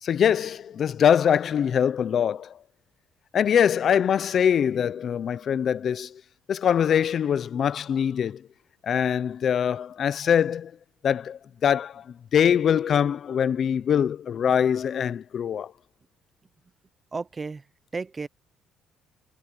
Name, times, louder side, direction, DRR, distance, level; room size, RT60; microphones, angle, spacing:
voice 1, 0.0-2.6 3.3-6.2 6.5-8.4 8.8-10.7 11.0-15.7, left 8 dB, 40° left, 0.5 m, -23 dB
voice 2, 17.1-17.7 17.9-18.3, right 4 dB, 20° right, 0.6 m, -33 dB
cardioid pair, 170°, 0 cm